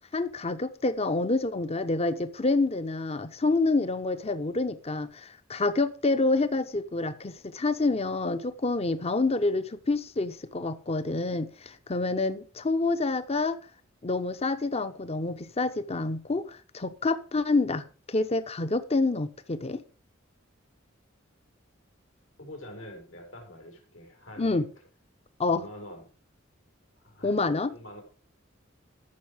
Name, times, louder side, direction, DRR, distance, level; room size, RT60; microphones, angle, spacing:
voice 1, 0.1-13.6 14.0-19.8 24.4-24.7 25.4-25.7 27.2-27.7, left 3 dB, 30° left, 0.8 m, -27 dB
voice 2, 22.4-24.6 25.4-26.0 27.0-28.0, left 1 dB, 80° left, 4.6 m, -45 dB
14.0 x 6.4 x 5.0 m
head